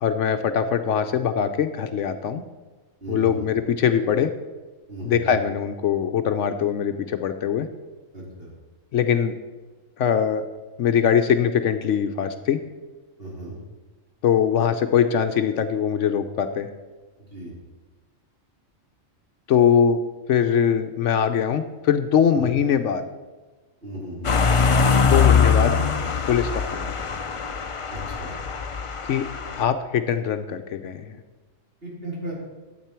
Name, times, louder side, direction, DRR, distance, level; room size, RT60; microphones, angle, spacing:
voice 1, 0.0-2.4 3.1-4.3 5.0-7.7 8.9-9.3 10.0-10.4 10.8-12.6 14.2-16.7 19.5-20.0 20.3-23.1 25.0-25.8 26.3-27.1 29.0-29.2 29.6-31.2, left 8 dB, 70° left, 9 dB, 0.9 m, -22 dB
voice 2, 3.0-3.5 4.9-5.4 8.1-8.5 13.2-13.5 17.3-17.5 22.3-22.5 23.8-24.3 27.9-28.4 31.8-32.3, right 1 dB, 45° right, -4 dB, 3.3 m, -35 dB
sound 1, 24.2-29.6, left 6 dB, 50° left, 0.4 m, -22 dB
12.5 x 8.1 x 4.4 m, 1.2 s
omnidirectional pair, 1.4 m